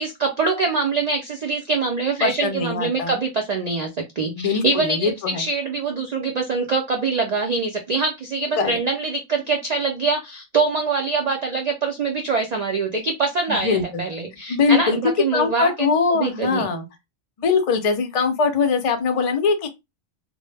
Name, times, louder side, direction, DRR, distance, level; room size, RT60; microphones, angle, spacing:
voice 1, 0.0-3.9 4.2-15.9 16.1-16.7, right 4 dB, 80° right, 0.3 m, -24 dB
voice 2, 2.2-3.2 4.3-5.5 8.6-8.8 13.5-14.0 14.5-15.0 15.3-16.9 17.4-19.7, left 5 dB, 65° left, 0.3 m, -22 dB
2.1 x 2.0 x 3.1 m
omnidirectional pair, 1.3 m